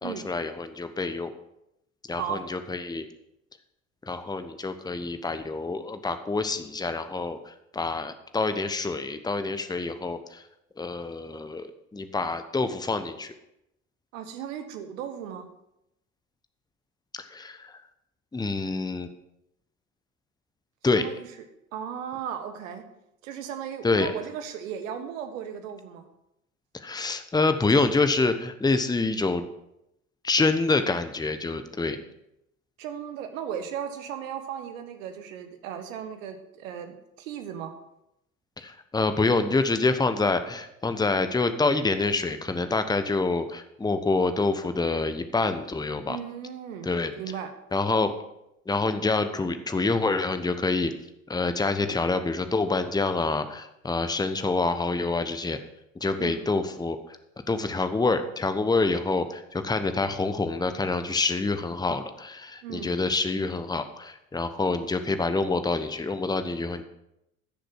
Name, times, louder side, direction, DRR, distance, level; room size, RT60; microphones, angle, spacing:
voice 1, 0.0-1.3 2.1-3.1 4.0-10.5 10.8-13.3 17.1-17.8 18.3-19.1 20.8-21.1 23.8-24.1 26.7-29.5 30.2-32.0 38.6-46.2 46.8-47.1 47.7-48.1 48.7-50.9 51.3-55.6 55.9-57.2 57.5-66.8, left 3 dB, 10° left, 9 dB, 1.1 m, -27 dB
voice 2, 2.1-2.4 14.1-15.5 20.9-21.2 21.7-22.8 23.2-26.1 32.8-37.7 46.1-46.9 47.2-47.5 56.2-56.5 62.6-63.0, right 8 dB, 70° right, 8 dB, 1.6 m, -36 dB
15.0 x 6.6 x 6.1 m, 0.83 s
figure-of-eight pair, 65°, 41 cm